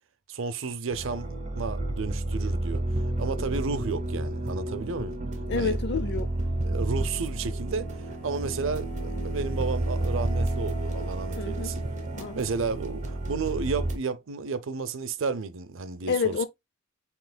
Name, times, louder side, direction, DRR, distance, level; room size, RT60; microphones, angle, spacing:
voice 1, 0.3-2.8 3.2-5.2 5.6-5.8 6.6-11.8 12.4-16.5, right 4 dB, 65° right, 0.6 m, -32 dB
sound 1, 0.9-14.0, right 1 dB, 35° right, 1.1 m, -30 dB
voice 2, 5.5-6.3 11.4-12.4 16.1-16.5, left 4 dB, 55° left, 0.5 m, -29 dB
7.7 x 3.0 x 2.2 m
head